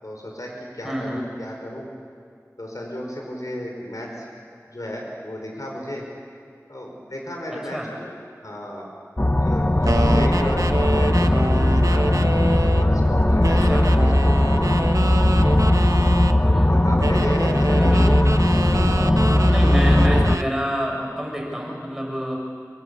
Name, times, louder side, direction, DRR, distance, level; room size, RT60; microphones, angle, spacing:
voice 1, 0.0-1.9 2.6-4.3 4.7-6.0 6.7-8.1 8.4-8.9 9.3-12.1 12.8-14.7 16.6-17.7, left 1 dB, 75° left, 0 dB, 5.5 m, -34 dB
voice 2, 0.8-1.3 7.5-7.9 9.8-10.2 13.5-13.9 16.2-17.2 17.6-18.1 19.2-22.4, equal, 5° right, -1 dB, 6.6 m, -29 dB
sound 1, 9.2-20.4, left 1 dB, 30° left, 0.9 m, -18 dB
sound 2, 9.8-12.9 13.4-16.4 17.0-20.5, right 2 dB, 75° right, 1.2 m, -27 dB
27.0 x 25.0 x 8.6 m, 2.2 s
wide cardioid pair, 40°, 6 cm